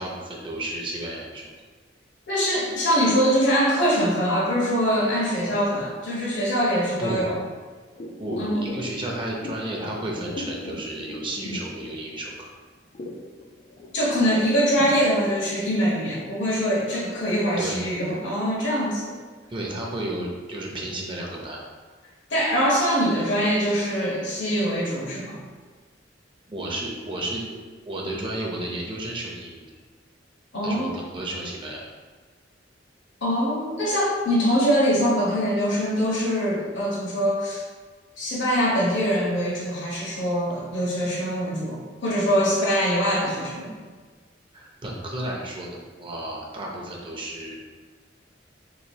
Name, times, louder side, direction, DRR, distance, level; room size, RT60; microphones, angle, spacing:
voice 1, 0.0-1.5 7.0-7.2 8.2-12.5 17.6-17.8 19.5-21.6 26.5-27.6 27.9-29.7 30.6-31.8 44.5-47.6, right 1 dB, 25° right, -2 dB, 0.6 m, -32 dB
voice 2, 2.3-7.4 8.4-8.6 13.9-19.2 22.3-25.4 30.5-30.9 33.2-37.6 38.2-43.7, equal, 75° left, -4 dB, 1.1 m, -23 dB
sound 1, 8.0-12.4 12.7-16.2 16.6-16.7, left 1 dB, 40° left, 0.4 m, -38 dB
3.7 x 3.0 x 2.7 m, 1.5 s
head